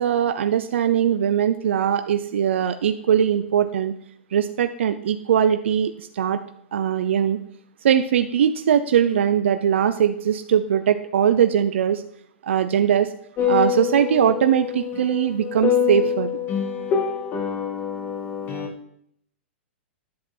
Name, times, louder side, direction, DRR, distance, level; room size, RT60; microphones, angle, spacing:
voice 1, 0.0-3.9 4.3-6.4 6.7-7.4 7.8-12.0 12.4-13.1 13.5-16.3, right 9 dB, 70° right, 10 dB, 0.7 m, -21 dB
sound 1, 13.4-18.7, left 8 dB, 30° left, 2.3 m, -25 dB
11.0 x 7.4 x 4.4 m, 0.68 s
hypercardioid pair, 125°, 7 cm